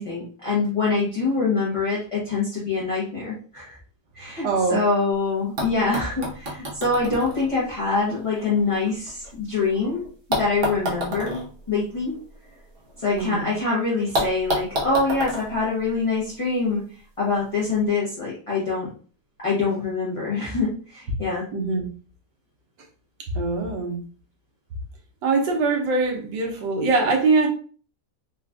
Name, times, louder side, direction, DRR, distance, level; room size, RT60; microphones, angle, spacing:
voice 1, 0.0-3.8 4.1-10.0 10.3-11.4 11.7-12.2 13.0-18.9 19.4-21.5, left 3 dB, 30° left, -8 dB, 0.7 m, -25 dB
voice 2, 4.4-4.8 13.2-13.5 21.5-21.9 23.3-24.0 25.2-27.5, right 3 dB, 80° right, 2 dB, 1.4 m, -22 dB
sound 1, 5.1-5.2 5.6-9.6 10.3-13.3 13.5-13.6 14.1-16.5 17.5-17.6, equal, 45° right, 0.8 m, -31 dB
3.8 x 2.4 x 2.3 m, 0.40 s
omnidirectional pair, 1.9 m